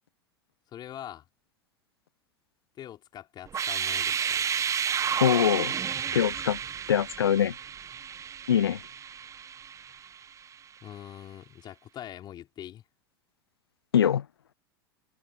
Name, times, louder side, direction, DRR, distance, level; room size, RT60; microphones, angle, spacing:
voice 1, 0.7-1.2 2.8-4.4 10.8-12.8, left 11 dB, 35° left, 5.0 m, -43 dB
sound 1, 3.5-10.3, right 8 dB, 25° right, 1.7 m, -31 dB
voice 2, 5.2-5.7 6.1-6.6 6.9-7.5 8.5-8.8 13.9-14.2, left 9 dB, 70° left, 0.9 m, -23 dB
figure-of-eight pair, 80°, 13 cm